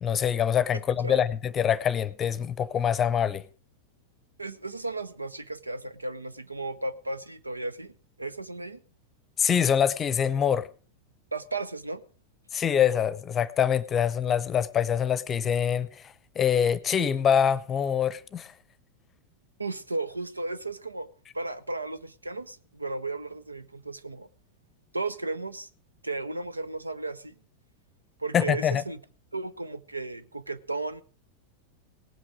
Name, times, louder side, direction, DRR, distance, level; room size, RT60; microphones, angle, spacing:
voice 1, 0.0-3.4 9.4-10.7 12.5-18.5 28.3-28.8, left 8 dB, 25° left, 0.7 m, -25 dB
voice 2, 4.4-8.8 11.3-12.0 19.6-21.1 21.3-24.3 24.9-25.7 26.0-27.3 28.2-29.0 29.3-31.0, right 2 dB, 80° right, 0.7 m, -34 dB
18.5 x 8.7 x 4.9 m
figure-of-eight pair, 90°, 0 cm